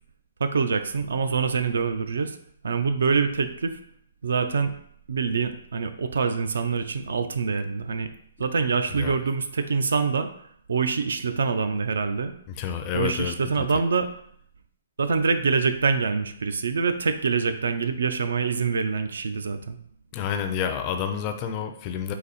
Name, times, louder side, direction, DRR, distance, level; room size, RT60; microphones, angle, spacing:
voice 1, 0.4-2.4 2.6-3.8 4.2-4.7 5.1-8.1 8.4-10.3 10.7-12.3 12.9-14.1 15.0-19.8, right 5 dB, 85° right, 9 dB, 0.4 m, -25 dB
voice 2, 12.5-13.3 20.1-22.1, left 8 dB, 25° left, 6 dB, 0.4 m, -29 dB
4.0 x 2.7 x 4.1 m, 0.68 s
hypercardioid pair, 165°, 0 cm